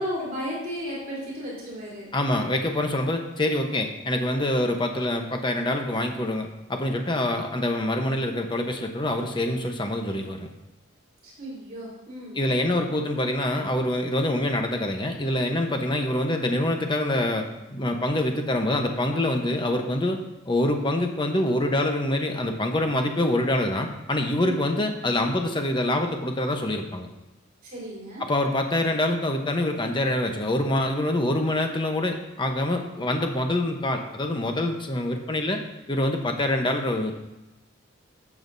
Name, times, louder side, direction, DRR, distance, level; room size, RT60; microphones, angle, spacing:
voice 1, 0.0-2.1 11.2-12.5 24.4-24.7 27.6-28.3, equal, 45° right, -7 dB, 3.5 m, -34 dB
voice 2, 2.1-10.5 12.4-20.2 20.4-27.1 28.2-35.6 35.9-37.1, left 1 dB, 25° left, 4 dB, 0.9 m, -25 dB
13.5 x 7.3 x 2.7 m, 0.99 s
head